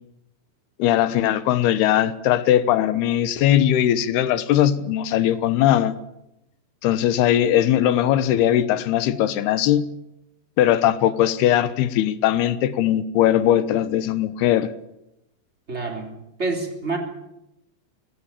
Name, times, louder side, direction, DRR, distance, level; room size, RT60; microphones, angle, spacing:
voice 1, 0.8-5.9 6.8-9.9 10.6-14.7, left 11 dB, 80° left, 14 dB, 3.0 m, -19 dB
voice 2, 15.7-17.0, right 3 dB, 15° right, 3 dB, 3.5 m, -28 dB
22.5 x 17.0 x 8.5 m, 0.86 s
omnidirectional pair, 4.7 m